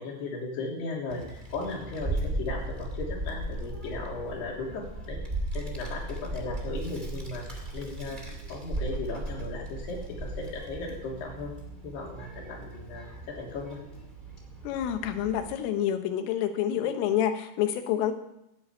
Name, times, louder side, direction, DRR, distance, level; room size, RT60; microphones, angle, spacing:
voice 1, 0.0-5.2 5.5-11.6 11.8-13.8, left 3 dB, 60° left, -2 dB, 5.0 m, -36 dB
Child speech kid speaking, 1.1-15.5, right 2 dB, 40° right, 0.7 m, -37 dB
voice 2, 14.6-18.1, left 10 dB, 85° left, 7 dB, 3.7 m, -28 dB
13.5 x 10.5 x 8.7 m, 0.85 s
omnidirectional pair, 5.7 m